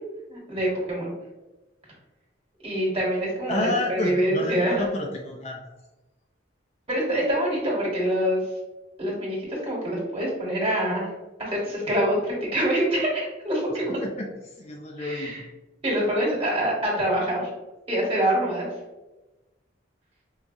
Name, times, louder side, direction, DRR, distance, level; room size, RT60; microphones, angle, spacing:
voice 1, 0.3-1.1 2.6-4.8 6.9-8.4 9.0-11.1 11.4-14.0 15.0-15.4 15.8-17.5 17.9-18.7, right 1 dB, 30° right, -6 dB, 1.4 m, -25 dB
voice 2, 3.5-5.7 14.0-14.3 14.6-15.4, left 2 dB, 35° left, 1 dB, 0.4 m, -29 dB
4.7 x 2.3 x 2.6 m, 1.1 s
head